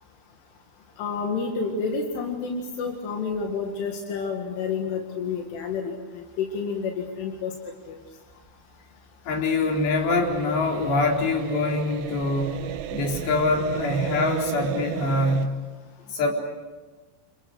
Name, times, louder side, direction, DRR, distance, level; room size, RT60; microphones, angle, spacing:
voice 1, 1.0-7.5 7.9-8.0, left 5 dB, 80° left, 2 dB, 4.5 m, -29 dB
voice 2, 9.3-12.6 12.9-15.6 16.1-16.3, left 2 dB, 65° left, 1 dB, 6.1 m, -24 dB
sound 1, 9.6-15.5, right 12 dB, 80° right, 3.5 m, -34 dB
29.5 x 29.0 x 6.5 m, 1.3 s
omnidirectional pair, 5.5 m